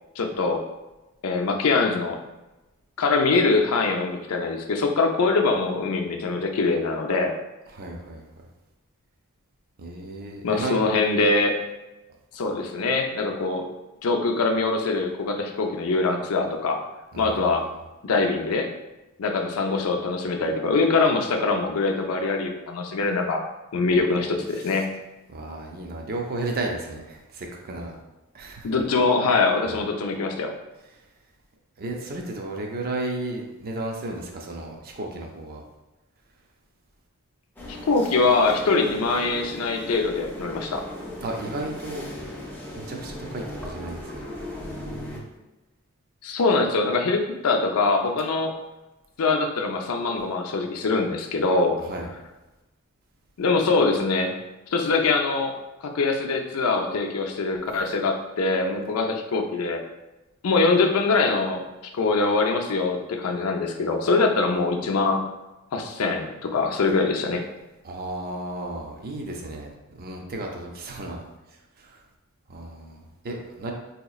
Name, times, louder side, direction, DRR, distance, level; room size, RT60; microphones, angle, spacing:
voice 1, 0.2-0.6 1.2-2.2 3.0-7.3 10.4-11.6 12.3-13.7 14.0-16.8 17.2-17.7 18.0-18.7 19.2-23.4 23.7-24.9 28.6-30.5 37.7-40.8 46.2-48.5 49.2-51.8 53.4-54.3 54.7-55.5 55.8-59.8 60.4-61.6 61.9-65.2 65.7-67.4, left 3 dB, 80° left, 4 dB, 0.5 m, -23 dB
voice 2, 7.7-8.2 9.8-10.8 17.1-17.6 24.5-24.8 25.3-27.9 28.3-28.8 29.6-29.8 31.8-35.6 41.2-42.1 42.8-44.3 44.6-45.3 51.8-52.1 67.8-71.2 71.8-72.0 72.5-73.7, right 2 dB, 45° right, 1 dB, 0.5 m, -34 dB
sound 1, 37.6-45.2, left 1 dB, 10° left, 0.5 m, -38 dB
4.0 x 2.9 x 2.4 m, 1.1 s
head